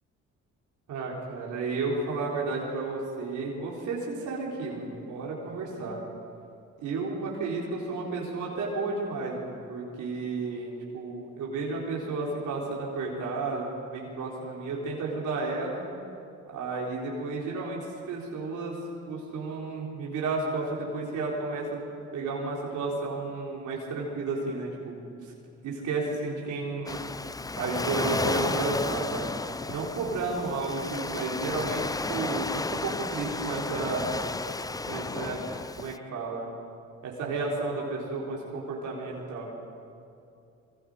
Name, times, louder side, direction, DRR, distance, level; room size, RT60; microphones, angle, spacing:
voice 1, 0.9-6.0 6.8-15.8 16.5-18.8 19.1-21.8 22.1-25.3 25.6-27.0 27.6-29.3 29.7-34.1 34.9-35.4 35.8-36.5 37.0-39.5, right 3 dB, 80° right, -4 dB, 3.9 m, -32 dB
Waves surf, 26.9-36.0, left 3 dB, 10° left, 0.5 m, -33 dB
25.0 x 24.0 x 5.0 m, 2.5 s
cardioid pair, 90°, 30 cm